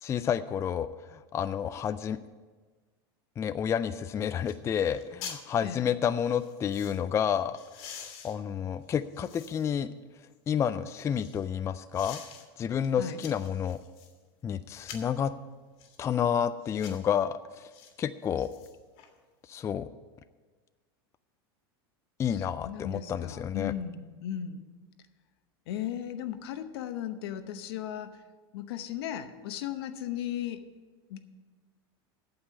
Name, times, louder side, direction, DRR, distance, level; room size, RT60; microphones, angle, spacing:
voice 1, 0.0-2.2 3.4-9.9 10.5-12.2 12.6-13.8 14.4-15.3 16.0-17.7 18.0-18.5 19.5-19.9 22.2-23.7, left 8 dB, 20° left, 12 dB, 0.3 m, -30 dB
sound 1, 3.9-4.0 4.4-4.6 4.9-5.4 6.2-7.0 7.5-9.8 10.3-11.4 11.9-12.4 12.8-14.2 14.8-15.2 15.8-16.0 16.6-17.1 17.7-17.9 18.3-19.1 19.4-19.5, left 7 dB, 55° left, 1.8 m, -47 dB
voice 2, 22.2-24.6 25.7-28.2 28.5-30.6 31.1-31.2, left 10 dB, 75° left, 9 dB, 0.9 m, -36 dB
8.7 x 7.2 x 8.2 m, 1.4 s
supercardioid pair, 115°, 13 cm